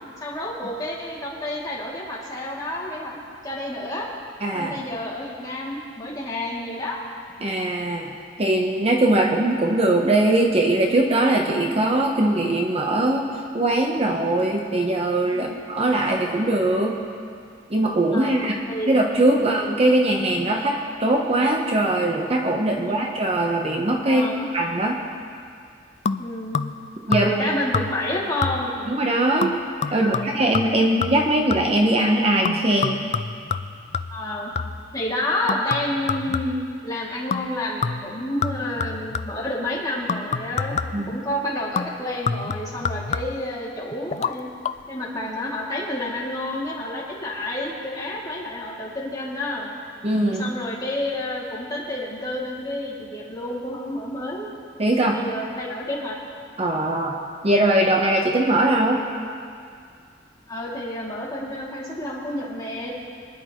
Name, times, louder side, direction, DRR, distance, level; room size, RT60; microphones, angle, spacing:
voice 1, 0.2-4.1 4.5-7.0 15.3-15.6 18.1-18.9 19.3-19.5 22.8-23.0 24.0-24.4 26.2-26.6 27.1-28.9 29.9-30.3 34.1-34.5 34.9-44.5 44.9-49.7 50.4-54.5 55.1-56.1 60.5-62.9, left 1 dB, 20° left, -6 dB, 2.6 m, -29 dB
voice 2, 4.4-4.8 7.4-8.1 8.4-13.3 13.5-17.0 17.7-18.6 18.9-24.3 24.5-25.0 27.1-27.5 28.9-29.5 29.9-33.1 40.9-41.1 50.0-50.5 54.8-55.2 56.6-57.1 57.4-59.0, right 1 dB, 35° right, 1 dB, 0.9 m, -21 dB
sound 1, 26.1-26.8 27.1-27.5 27.7-28.1 28.4-28.8 29.4-31.8 32.4-34.9 35.5-36.8 37.3-37.5 37.8-39.5 40.1-41.1 41.8-43.5 44.1-44.3 44.6-44.7, left 5 dB, 35° left, 0.3 m, -28 dB
24.0 x 10.5 x 3.1 m, 2.3 s
head